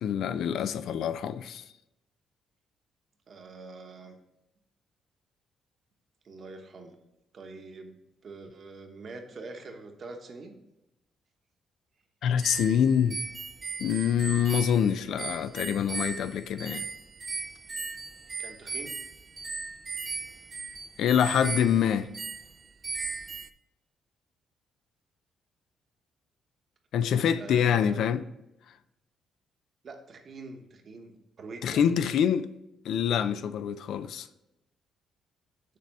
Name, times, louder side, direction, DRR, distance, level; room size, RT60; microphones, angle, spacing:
voice 1, 0.0-1.6 12.2-13.2 13.8-16.9 21.0-22.1 26.9-28.2 31.6-32.5 32.8-34.3, left 8 dB, 75° left, 0.3 m, -25 dB
voice 2, 3.3-4.2 6.2-7.0 7.3-7.9 8.2-10.5 18.4-18.9 27.4-28.0 29.8-31.9, right 3 dB, 50° right, 1.0 m, -44 dB
sound 1, 12.4-23.5, right 4 dB, 30° right, 0.3 m, -37 dB
6.6 x 3.4 x 5.2 m
cardioid pair, 90°, 0 cm